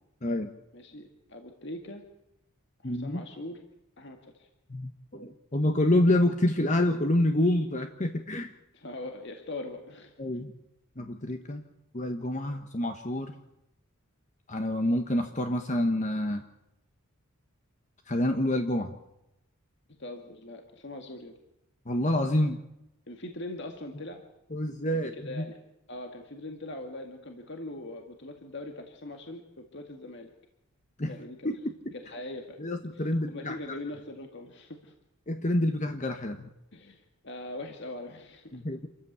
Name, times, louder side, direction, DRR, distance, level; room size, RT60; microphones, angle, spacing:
voice 1, 0.2-0.5 2.8-3.2 4.7-8.5 10.2-10.5 11.0-11.6 11.9-13.3 14.5-16.4 18.1-18.9 21.9-22.6 24.5-25.5 31.0-31.1 31.4-31.9 32.6-33.6 35.3-36.5 38.5-38.9, left 1 dB, 35° left, 6 dB, 1.2 m, -27 dB
voice 2, 0.7-2.0 2.8-3.6 4.0-4.5 8.7-10.1 20.0-21.3 23.1-24.2 25.0-25.6 25.9-30.3 31.1-31.5 31.9-32.6 32.9-34.9 36.7-38.6, left 2 dB, 55° left, 4 dB, 2.0 m, -41 dB
27.5 x 14.5 x 8.1 m, 0.88 s
head